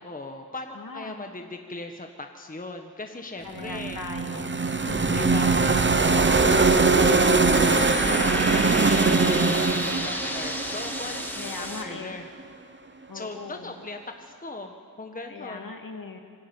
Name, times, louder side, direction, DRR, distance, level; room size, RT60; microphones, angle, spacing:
voice 1, 0.0-4.0 5.1-12.3 13.1-15.7, left 2 dB, 20° left, 4 dB, 1.3 m, -39 dB
voice 2, 0.7-1.1 3.4-4.5 4.8-5.4 11.4-12.2 13.1-13.7 15.3-16.2, left 4 dB, 55° left, 3 dB, 2.3 m, -39 dB
sound 1, 3.6-11.6, right 3 dB, 30° right, 0.9 m, -22 dB
sound 2, 6.0-11.8, left 1 dB, 5° left, 2.4 m, -32 dB
24.5 x 12.0 x 9.0 m, 2.1 s
wide cardioid pair, 90°, 39 cm